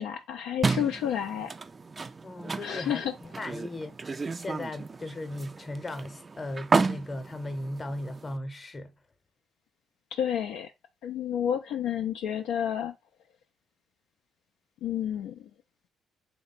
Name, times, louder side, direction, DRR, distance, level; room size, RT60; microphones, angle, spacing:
voice 1, 0.0-1.5 2.6-3.1 10.1-10.7 11.0-12.9 14.8-15.5, left 9 dB, 70° left, 0.4 m, -30 dB
sound 1, 0.6-8.4, right 4 dB, 35° right, 0.4 m, -32 dB
voice 2, 2.2-3.9 4.4-8.9, left 1 dB, 30° left, 0.8 m, -37 dB
3.1 x 2.1 x 4.1 m
hypercardioid pair, 45°, 0 cm